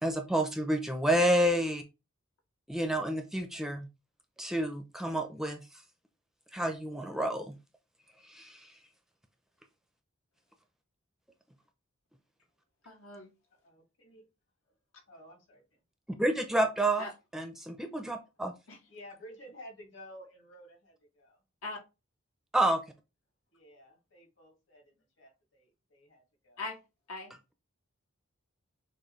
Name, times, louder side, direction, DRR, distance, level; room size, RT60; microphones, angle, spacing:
voice 1, 0.0-1.8 2.7-3.9 4.4-5.6 6.5-7.6 8.2-8.7 16.2-17.1 17.3-18.5 22.5-22.8, right 1 dB, ahead, 0.4 m, -29 dB
voice 2, 12.8-13.3 17.0-17.1 18.7-18.8 21.6-21.8 26.6-26.8 27.1-27.3, left 2 dB, 90° left, 1.5 m, -40 dB
voice 3, 13.6-14.3 15.1-15.6 18.9-21.4 23.5-24.8 25.2-26.6, equal, 60° left, 1.9 m, -52 dB
6.5 x 2.6 x 3.0 m
head